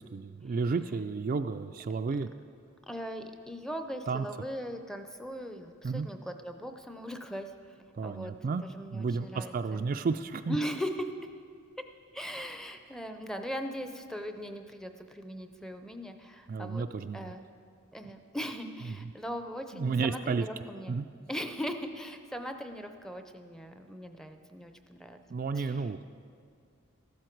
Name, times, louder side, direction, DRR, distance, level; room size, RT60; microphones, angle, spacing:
voice 1, 0.0-2.3 4.1-4.3 5.8-6.1 7.9-8.6 8.9-10.6 16.5-17.3 18.9-19.0 19.7-20.5 20.9-21.1 25.3-26.0, right 4 dB, 45° right, 8 dB, 0.3 m, -32 dB
voice 2, 2.9-8.3 8.7-9.8 10.5-11.3 11.8-11.9 12.1-16.8 17.1-17.4 17.9-21.0 21.3-25.2 25.5-25.8, equal, 5° left, 7 dB, 0.6 m, -39 dB
14.5 x 12.5 x 4.6 m, 2.2 s
head